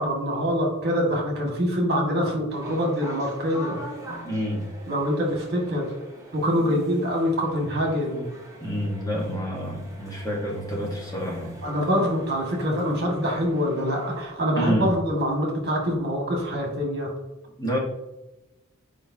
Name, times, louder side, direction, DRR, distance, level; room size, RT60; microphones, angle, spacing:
voice 1, 0.0-3.8 4.9-5.8 6.3-8.3 11.6-17.1, equal, 50° right, 0 dB, 1.9 m, -25 dB
sound 1, 2.5-14.3, equal, 15° right, 1.3 m, -43 dB
voice 2, 4.1-4.6 6.6-6.8 8.6-11.6 14.5-14.9 17.6-17.8, equal, 15° left, -3 dB, 1.4 m, -28 dB
7.3 x 5.0 x 2.8 m, 0.99 s
head